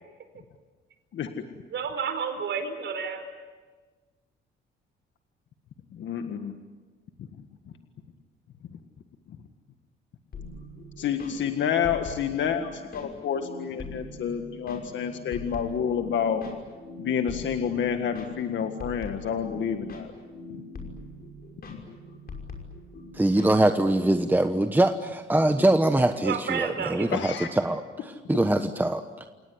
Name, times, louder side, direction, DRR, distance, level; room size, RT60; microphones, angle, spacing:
voice 1, 1.1-1.4 6.0-6.5 11.0-16.4 17.0-20.1 21.7-21.8 27.1-27.5, left 8 dB, 70° left, 6 dB, 1.8 m, -29 dB
voice 2, 1.7-3.2 26.2-27.1, right 6 dB, 65° right, 7 dB, 4.9 m, -30 dB
sound 1, 10.3-24.2, left 2 dB, 50° left, 5.8 m, -42 dB
voice 3, 23.1-29.3, right 1 dB, 10° right, 7 dB, 1.2 m, -23 dB
29.0 x 18.5 x 9.8 m, 1.4 s
cardioid pair, 90°, 20 cm